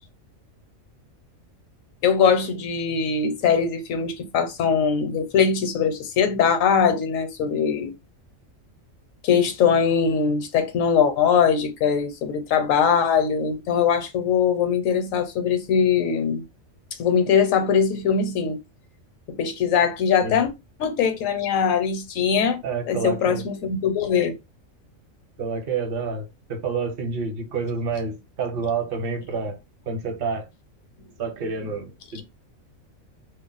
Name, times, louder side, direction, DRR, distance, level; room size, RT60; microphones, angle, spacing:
voice 1, 2.0-7.9 9.2-16.4 17.0-18.6 19.3-20.5 20.8-24.4, left 6 dB, 75° left, 1.0 m, -21 dB
voice 2, 22.6-23.4 25.4-29.6 29.9-30.5 31.2-32.2, right 4 dB, 50° right, 0.9 m, -28 dB
2.5 x 2.0 x 3.9 m
omnidirectional pair, 1.4 m